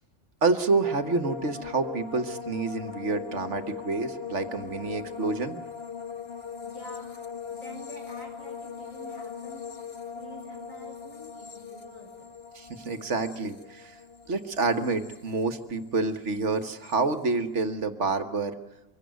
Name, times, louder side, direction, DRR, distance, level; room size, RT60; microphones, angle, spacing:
voice 1, 0.4-5.6 12.5-14.0 14.3-18.6, right 3 dB, 60° right, 9 dB, 1.6 m, -28 dB
sound 1, 0.8-16.1 16.3-17.0, left 6 dB, 50° left, 1.5 m, -40 dB
voice 2, 6.6-7.2 7.5-9.7 10.0-12.3, equal, 80° left, 1 dB, 7.6 m, -48 dB
24.5 x 16.0 x 9.3 m, 1.1 s
omnidirectional pair, 1.4 m